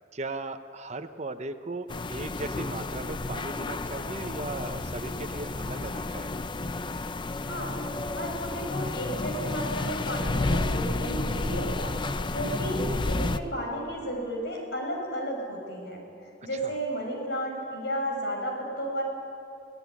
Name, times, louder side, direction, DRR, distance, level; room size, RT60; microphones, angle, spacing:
voice 1, 0.1-6.3 16.6-16.7, right 2 dB, 35° right, 8 dB, 0.9 m, -37 dB
sound 1, 1.9-13.4, left 2 dB, 25° left, 0.6 m, -31 dB
voice 2, 7.4-7.8 8.1-11.9 12.3-16.0 16.4-19.0, equal, 65° left, 1 dB, 6.6 m, -33 dB
23.5 x 17.0 x 9.7 m, 2.5 s
head